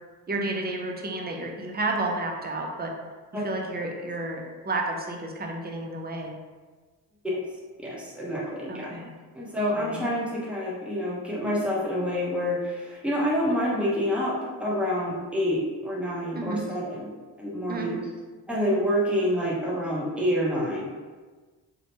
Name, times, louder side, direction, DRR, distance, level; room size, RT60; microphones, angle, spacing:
voice 1, 0.3-2.9 3.3-6.4 8.7-9.1 9.8-10.1 16.3-16.6 17.7-17.9, right 2 dB, 25° right, 1 dB, 0.5 m, -31 dB
voice 2, 7.8-8.9 9.3-17.1 17.4-18.0 18.5-20.8, equal, 5° right, -5 dB, 0.8 m, -27 dB
2.8 x 2.1 x 2.9 m, 1.4 s
cardioid pair, 60°, 41 cm